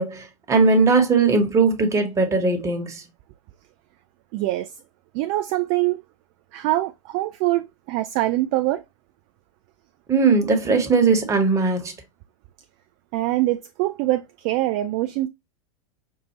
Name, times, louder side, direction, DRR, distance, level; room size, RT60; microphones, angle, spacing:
voice 1, 0.0-3.0 10.1-11.9, right 4 dB, 20° right, 1.1 m, -19 dB
voice 2, 4.3-4.7 5.1-6.0 6.5-8.8 13.1-15.3, right 16 dB, 35° right, 0.3 m, -24 dB
5.4 x 2.5 x 3.0 m
figure-of-eight pair, 90°, 17 cm